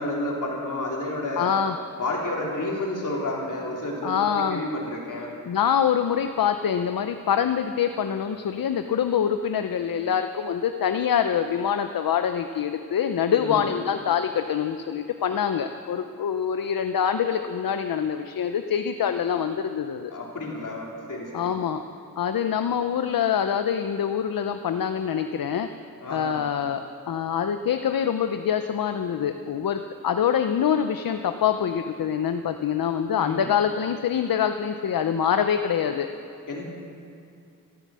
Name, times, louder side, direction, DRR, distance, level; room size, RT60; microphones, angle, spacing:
voice 1, 0.0-1.5 2.0-5.3 13.4-13.6 20.1-21.6 26.0-26.4 33.2-33.4 36.5-36.6, left 1 dB, 65° left, -3 dB, 3.3 m, -30 dB
voice 2, 1.4-1.8 4.0-4.6 5.5-20.1 21.3-21.8 22.2-25.7 26.1-36.1, left 8 dB, 85° left, 8 dB, 0.6 m, -25 dB
13.5 x 13.5 x 7.5 m, 2.4 s
wide cardioid pair, 125°, 34 cm